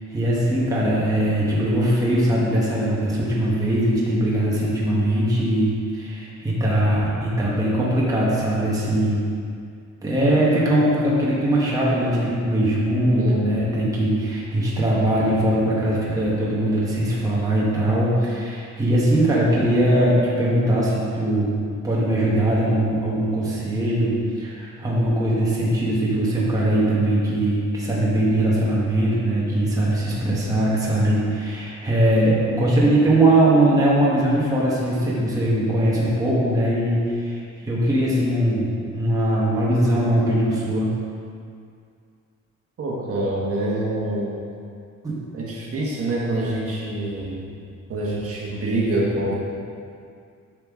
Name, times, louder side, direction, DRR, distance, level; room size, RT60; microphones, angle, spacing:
voice 1, 0.1-9.2 10.0-21.6 21.8-40.9 45.0-45.2, right 1 dB, 10° right, -7 dB, 1.3 m, -21 dB
voice 2, 13.2-13.6 42.8-44.3 45.3-47.6 47.9-49.3, right 1 dB, 50° right, -4 dB, 1.5 m, -25 dB
9.6 x 5.8 x 3.7 m, 2.3 s
wide cardioid pair, 175°, 29 cm